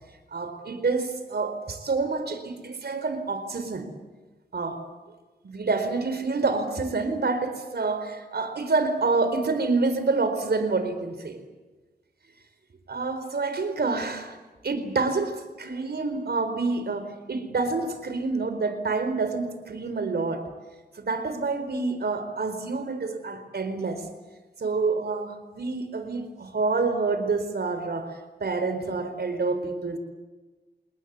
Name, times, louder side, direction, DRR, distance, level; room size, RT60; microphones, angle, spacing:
voice 1, 0.3-3.9 4.5-4.9 5.4-11.4 12.9-14.4 14.6-20.5 20.9-24.1 24.6-30.0, right 3 dB, 70° right, 9 dB, 4.4 m, -27 dB
29.0 x 19.5 x 8.3 m, 1.2 s
wide cardioid pair, 70°, 17 cm